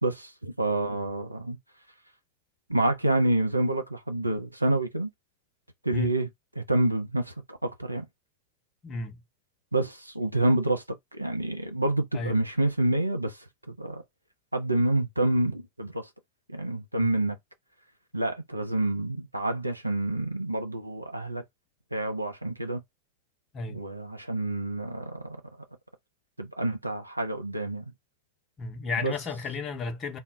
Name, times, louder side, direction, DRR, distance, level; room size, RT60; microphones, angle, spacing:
voice 1, 0.0-1.6 2.7-5.1 5.8-6.3 6.6-8.1 9.7-10.8 11.1-13.4 13.7-14.0 14.5-16.1 16.5-17.4 18.1-21.4 21.9-22.8 23.7-25.4 26.4-27.9 29.0-29.1, right 1 dB, 85° right, 0.5 m, -28 dB
voice 2, 8.8-9.2 12.1-12.4 17.0-17.1 23.5-23.8 28.6-30.2, left 3 dB, 25° left, 0.7 m, -33 dB
2.1 x 2.1 x 3.6 m
figure-of-eight pair, 90°, 0 cm